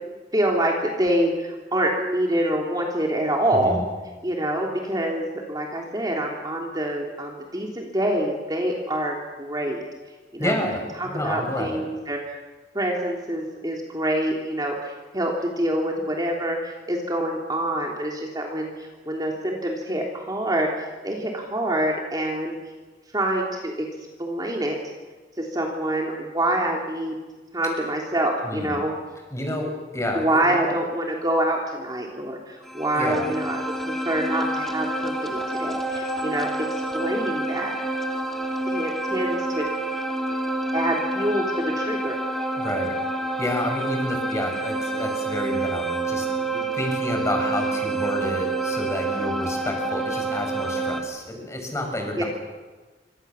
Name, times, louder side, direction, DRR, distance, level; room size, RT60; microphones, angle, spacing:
voice 1, 0.3-3.8 4.2-9.8 10.3-10.6 11.0-12.4 12.7-20.7 21.0-22.5 23.1-23.9 24.2-24.8 25.4-27.1 27.5-28.9 30.1-36.5 36.9-37.7 38.7-39.6 40.7-42.2 52.2-52.3, right 1 dB, 25° right, -1 dB, 3.3 m, -26 dB
voice 2, 3.5-3.8 10.4-11.8 28.4-28.8 29.3-30.7 32.9-33.3 42.6-43.0 43.4-52.2, left 1 dB, 15° left, 2 dB, 6.8 m, -29 dB
sound 1, 32.6-51.0, right 2 dB, ahead, 2.7 m, -28 dB
28.0 x 25.5 x 7.2 m, 1.3 s
head